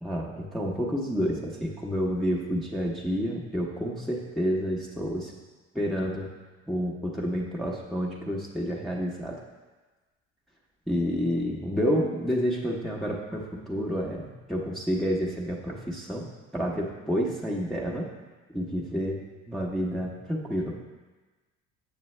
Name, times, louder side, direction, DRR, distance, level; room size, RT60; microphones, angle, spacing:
voice 1, 0.0-5.3 5.7-6.3 6.7-9.4 10.9-16.3 16.5-18.1 18.5-19.2 19.5-20.7, equal, ahead, -4 dB, 0.9 m, -29 dB
7.0 x 6.7 x 3.2 m, 1.3 s
supercardioid pair, 90°, 32 cm